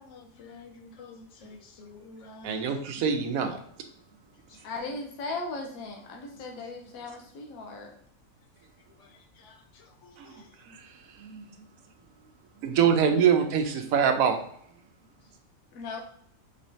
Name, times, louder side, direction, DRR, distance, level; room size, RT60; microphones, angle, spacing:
voice 1, 0.0-2.8 4.5-4.7 8.9-10.5, left 3 dB, 70° left, 3 dB, 0.8 m, -50 dB
voice 2, 2.4-3.6 10.2-10.3 10.7-10.9 11.2-11.5 12.6-14.4, right 7 dB, 80° right, 6 dB, 1.0 m, -24 dB
voice 3, 4.6-7.9 15.7-16.0, left 3 dB, 90° left, 2 dB, 1.1 m, -37 dB
4.2 x 3.1 x 2.7 m, 0.66 s
omnidirectional pair, 1.5 m